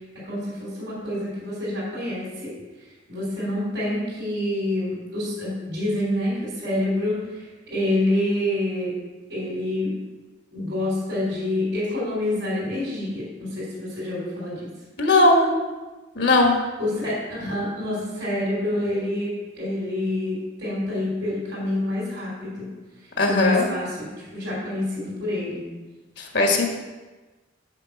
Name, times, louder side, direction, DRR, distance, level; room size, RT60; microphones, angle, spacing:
voice 1, 0.1-2.5 3.1-8.9 9.3-9.9 10.5-14.7 16.8-22.7 23.3-25.6, left 1 dB, 60° right, -7 dB, 3.2 m, -27 dB
voice 2, 15.0-15.5 16.2-16.6 23.2-23.7 26.3-26.7, left 2 dB, 60° left, 2 dB, 1.3 m, -18 dB
6.8 x 5.4 x 7.0 m, 1.2 s
head